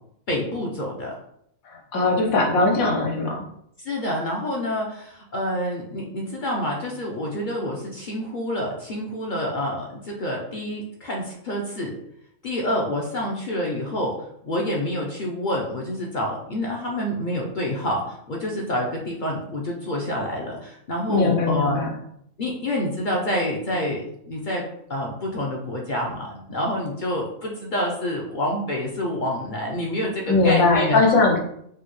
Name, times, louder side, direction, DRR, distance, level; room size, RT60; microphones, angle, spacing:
voice 1, 0.3-1.1 3.8-11.9 12.4-14.1 14.4-21.9 22.4-24.6 24.9-31.0, left 1 dB, 55° left, -2 dB, 0.6 m, -27 dB
voice 2, 1.6-3.4 21.1-21.9 30.3-31.4, left 3 dB, 85° left, 0 dB, 1.3 m, -20 dB
4.6 x 2.1 x 3.0 m, 0.72 s
omnidirectional pair, 1.4 m